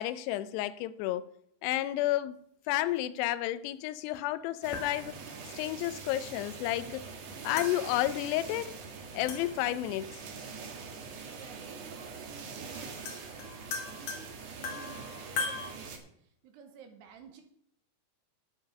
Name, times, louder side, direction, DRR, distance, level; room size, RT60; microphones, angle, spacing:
voice 1, 0.0-1.3 1.6-5.2 5.5-7.1 7.4-8.7 9.1-10.1, left 14 dB, 80° left, 2.7 m, -31 dB
sound 1, 4.1-4.2 4.7-5.5 7.6-8.4 9.3-9.8 11.3-11.4 12.4-12.5 12.7-15.7, left 4 dB, 60° left, 2.2 m, -39 dB
sound 2, 4.6-16.0, right 5 dB, 60° right, 1.8 m, -44 dB
voice 2, 11.2-17.4, right 7 dB, 80° right, 3.1 m, -54 dB
9.7 x 9.4 x 5.3 m
omnidirectional pair, 4.9 m